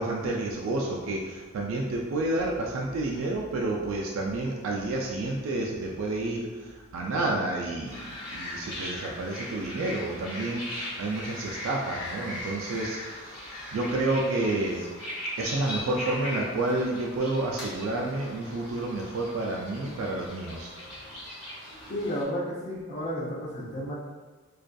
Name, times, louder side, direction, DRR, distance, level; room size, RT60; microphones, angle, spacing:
voice 1, 0.0-6.5 6.9-14.8 15.4-20.7, right 2 dB, 65° right, -2 dB, 0.3 m, -30 dB
sound 1, 7.9-22.2, left 1 dB, 75° left, 0.9 m, -39 dB
voice 2, 21.9-23.9, equal, 35° left, -6 dB, 0.5 m, -32 dB
2.5 x 2.3 x 2.2 m, 1.3 s
head